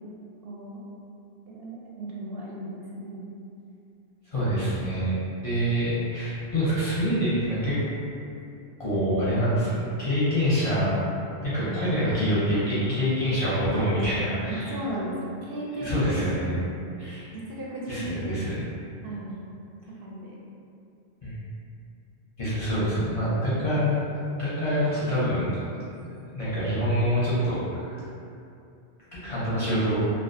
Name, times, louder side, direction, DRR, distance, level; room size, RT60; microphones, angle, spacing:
voice 1, 0.4-0.8 1.5-3.3 11.6-11.9 14.5-16.6 17.3-18.4 19.0-19.4 20.0-20.4 23.1-23.4, right 1 dB, 65° right, -5 dB, 0.7 m, -35 dB
voice 2, 4.3-7.8 8.8-10.9 11.4-14.7 15.8-16.5 17.0-17.3 17.9-18.6 21.2-21.3 22.4-23.9 24.4-25.5 26.3-28.0 29.2-30.0, equal, 40° left, -11 dB, 0.5 m, -26 dB
2.3 x 2.2 x 2.5 m, 2.6 s
omnidirectional pair, 1.1 m